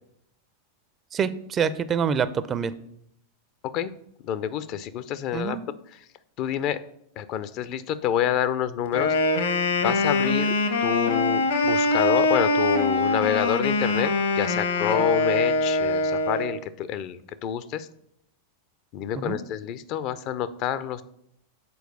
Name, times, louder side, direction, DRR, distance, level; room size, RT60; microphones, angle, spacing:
voice 1, 1.1-2.7 5.3-5.6 19.1-19.4, right 7 dB, 25° right, 14 dB, 0.4 m, -26 dB
voice 2, 4.2-5.6 5.9-6.0 6.4-6.8 7.2-9.1 9.8-10.5 10.8-17.9 18.9-21.0, left 10 dB, 40° left, 14 dB, 0.5 m, -28 dB
Wind instrument woodwind instrument, 8.9-16.6, left 2 dB, 65° left, 1.1 m, -23 dB
6.8 x 4.5 x 6.5 m, 0.73 s
figure-of-eight pair, 90°, 0 cm